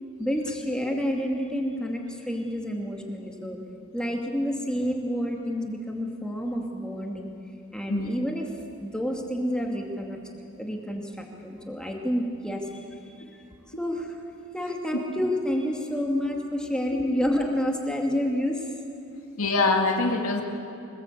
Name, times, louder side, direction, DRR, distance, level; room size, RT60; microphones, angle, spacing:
voice 1, 0.2-3.6 3.9-7.3 7.7-8.5 8.8-10.2 10.6-13.4 13.8-14.2 14.5-18.7, equal, 5° left, 0 dB, 2.4 m, -29 dB
voice 2, 19.4-20.4, left 3 dB, 80° left, 2 dB, 2.3 m, -24 dB
25.5 x 20.0 x 8.5 m, 2.7 s
head